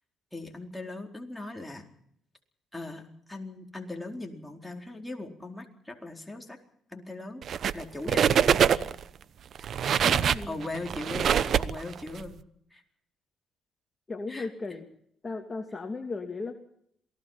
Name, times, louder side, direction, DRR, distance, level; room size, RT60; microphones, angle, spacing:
voice 1, 0.3-1.9 2.7-6.6 6.9-7.4 7.7-8.8 10.5-12.4 12.7-12.8 14.3-14.5, left 2 dB, 5° left, 2 dB, 4.3 m, -39 dB
sound 1, 7.4-7.8 8.1-9.0 9.6-12.2, right 8 dB, 60° right, 1.0 m, -24 dB
voice 2, 10.0-10.6 14.1-14.9 15.2-16.5, left 3 dB, 25° left, 3 dB, 2.6 m, -36 dB
28.0 x 18.5 x 5.8 m, 0.69 s
cardioid pair, 90°, 0 cm